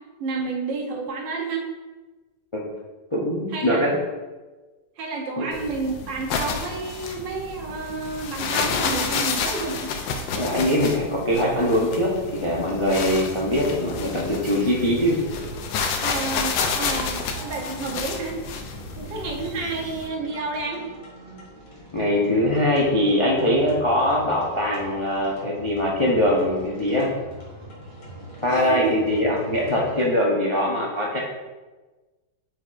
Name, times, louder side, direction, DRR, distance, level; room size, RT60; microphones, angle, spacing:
voice 1, 0.2-1.7 3.5-3.8 5.0-9.9 16.0-18.4 19.0-20.9 28.5-29.0, right 4 dB, 85° right, 1 dB, 1.6 m, -30 dB
voice 2, 3.1-3.9 5.4-5.5 10.3-15.2 21.9-27.1 28.4-31.2, left 1 dB, 40° left, -4 dB, 0.4 m, -22 dB
sound 1, 5.5-20.1, left 5 dB, 85° left, 1.3 m, -30 dB
sound 2, 11.8-30.1, equal, 70° left, 2.5 m, -42 dB
8.9 x 4.2 x 2.5 m, 1.2 s
omnidirectional pair, 1.9 m